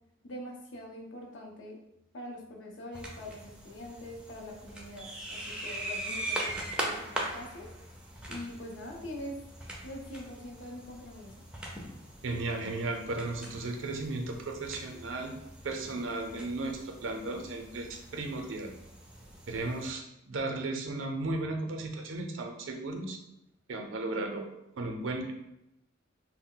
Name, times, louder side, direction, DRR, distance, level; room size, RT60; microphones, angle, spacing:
voice 1, 0.2-1.8 2.1-7.7 8.3-9.4 9.8-11.4, left 1 dB, 70° left, 0 dB, 0.6 m, -43 dB
sound 1, 2.9-19.9, right 1 dB, 5° right, 0.4 m, -41 dB
voice 2, 12.2-15.3 15.6-18.7 19.5-23.2 23.7-24.4 24.7-25.3, right 2 dB, 85° right, 3 dB, 0.5 m, -35 dB
2.2 x 2.0 x 3.7 m, 0.86 s
head